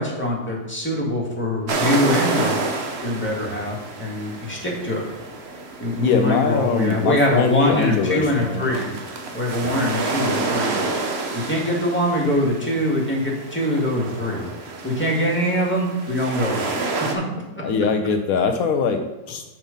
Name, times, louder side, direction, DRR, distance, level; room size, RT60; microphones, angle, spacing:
voice 1, 0.0-2.6 3.0-5.1 5.8-8.9 9.3-10.8 11.3-14.5 14.8-16.6 17.1-17.2, left 1 dB, 10° left, -3 dB, 1.8 m, -23 dB
sound 1, 1.7-17.1, right 3 dB, 50° right, 1.1 m, -29 dB
voice 2, 6.0-8.7 9.6-9.9 17.6-19.4, left 5 dB, 80° left, 5 dB, 1.1 m, -22 dB
6.1 x 5.4 x 5.2 m, 1.1 s
omnidirectional pair, 1.5 m